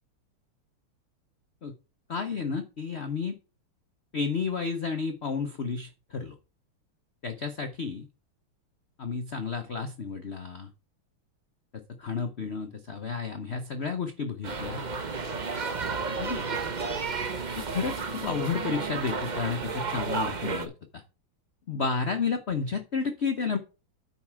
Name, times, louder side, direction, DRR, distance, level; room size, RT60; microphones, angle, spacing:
voice 1, 2.1-3.4 4.1-6.3 7.2-8.1 9.0-10.7 11.7-14.8 16.2-16.4 17.6-21.0 21.7-23.6, left 5 dB, 55° left, 6 dB, 0.7 m, -31 dB
sound 1, 14.4-20.7, right 4 dB, 80° right, 0.4 m, -32 dB
9.3 x 5.7 x 4.6 m, 0.34 s
omnidirectional pair, 2.4 m